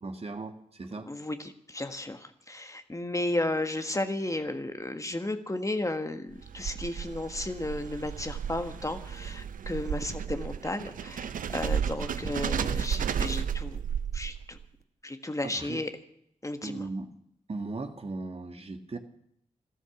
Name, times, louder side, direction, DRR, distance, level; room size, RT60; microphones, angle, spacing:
voice 1, 0.0-1.1 15.4-15.8 16.6-17.1 17.5-19.0, right 3 dB, 45° right, 6 dB, 2.0 m, -37 dB
voice 2, 1.0-13.8 14.1-14.6 15.0-15.9 16.4-16.9, left 2 dB, 25° left, 7 dB, 1.7 m, -33 dB
sound 1, 6.3-14.6, right 8 dB, 80° right, 0.7 m, -33 dB
14.0 x 13.0 x 7.2 m, 0.72 s
cardioid pair, 50°, 14 cm